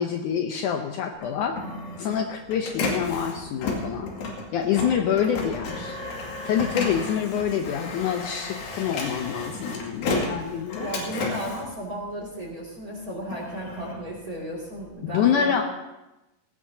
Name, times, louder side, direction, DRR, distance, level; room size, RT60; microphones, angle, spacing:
voice 1, 0.0-1.6 2.0-4.1 4.5-6.0 6.4-10.9 15.0-15.6, left 8 dB, 75° left, 4 dB, 2.0 m, -26 dB
Printer, 1.1-12.6 13.0-14.9, left 3 dB, 90° left, 4.0 m, -33 dB
voice 2, 10.8-15.6, right 1 dB, 25° right, -2 dB, 2.5 m, -34 dB
18.0 x 17.5 x 2.8 m, 0.98 s
omnidirectional pair, 4.1 m